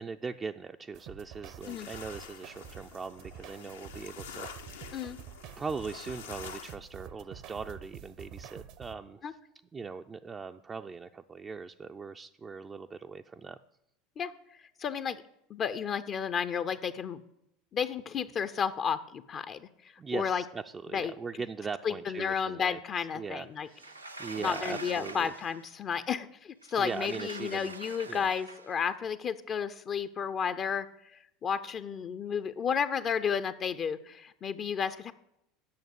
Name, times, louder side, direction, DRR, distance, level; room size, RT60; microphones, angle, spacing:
voice 1, 0.0-5.1 5.6-9.3 9.7-13.6 20.0-25.3 26.8-27.7 28.1-28.2, right 5 dB, 25° right, 5 dB, 0.4 m, -40 dB
sound 1, 0.9-8.9, right 8 dB, 55° right, 0.7 m, -48 dB
sound 2, 1.6-6.8, left 7 dB, 75° left, 0.8 m, -47 dB
voice 2, 14.8-15.2 15.5-17.2 17.7-20.4 20.9-21.1 21.8-23.7 24.4-35.1, left 7 dB, 40° left, 12 dB, 0.5 m, -32 dB
Sliding door, 23.7-25.7 26.6-28.8, right 3 dB, 90° right, 0.5 m, -44 dB
8.6 x 6.5 x 8.1 m, 0.80 s
figure-of-eight pair, 75°, 0 cm